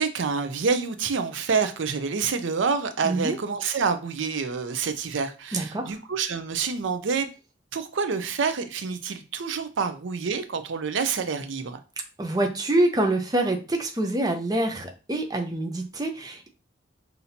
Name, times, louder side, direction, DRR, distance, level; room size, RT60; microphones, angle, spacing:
voice 1, 0.0-7.3 7.7-11.8, right 5 dB, 75° right, 9 dB, 0.5 m, -27 dB
voice 2, 3.0-3.4 5.5-6.0 12.2-16.5, right 1 dB, 20° right, 3 dB, 0.5 m, -26 dB
5.7 x 2.7 x 2.7 m, 0.32 s
head